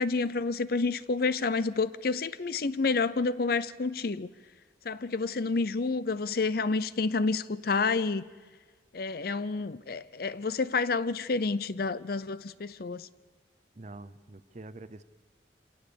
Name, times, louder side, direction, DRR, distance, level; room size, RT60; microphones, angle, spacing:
voice 1, 0.0-4.3 4.8-8.2 8.9-13.1, left 4 dB, 55° left, 0.6 m, -29 dB
voice 2, 13.8-15.0, right 2 dB, 40° right, 0.7 m, -45 dB
26.5 x 18.0 x 6.9 m
head